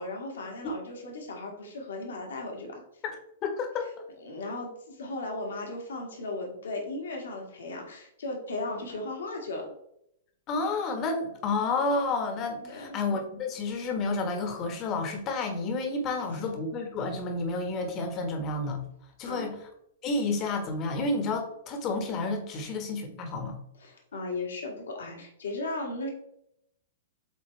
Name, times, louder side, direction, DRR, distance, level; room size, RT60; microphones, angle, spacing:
voice 1, 0.0-2.8 4.2-9.7 12.6-13.0 16.3-16.6 19.2-19.6 23.8-26.1, left 2 dB, 70° left, 1 dB, 1.9 m, -36 dB
voice 2, 3.4-4.1 10.5-18.8 19.2-19.7 20.0-23.6, left 3 dB, 30° left, 5 dB, 1.4 m, -30 dB
8.0 x 3.7 x 3.4 m, 0.75 s
figure-of-eight pair, 110°, 0 cm